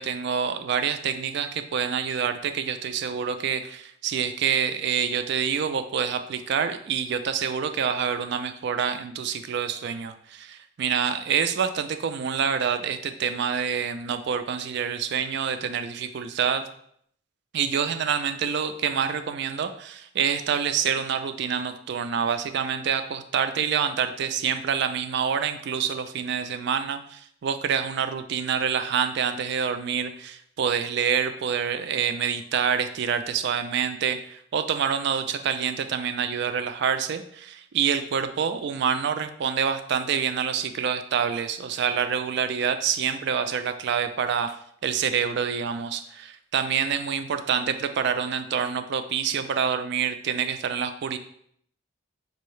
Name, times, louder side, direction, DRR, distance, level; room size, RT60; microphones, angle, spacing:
voice 1, 0.0-16.7 17.5-44.6 44.8-51.2, right 7 dB, 55° right, 9 dB, 0.3 m, -27 dB
5.3 x 2.7 x 3.1 m, 0.67 s
head